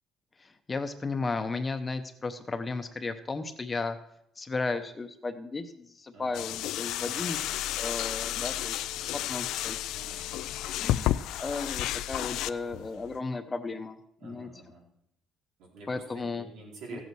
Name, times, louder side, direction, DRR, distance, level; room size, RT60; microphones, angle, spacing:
voice 1, 0.4-4.0 4.4-7.4 7.8-9.8 10.8-14.5 15.9-16.4 16.9-17.0, left 3 dB, 20° left, 8 dB, 0.8 m, -35 dB
voice 2, 6.1-6.5 7.0-7.4 9.9-10.5 14.2-14.9 15.6-17.0, right 3 dB, 90° right, -3 dB, 4.1 m, -48 dB
sound 1, 6.3-13.2, left 13 dB, 80° left, 0.4 m, -32 dB
15.0 x 8.3 x 4.6 m, 0.76 s
cardioid pair, 155°, 0 cm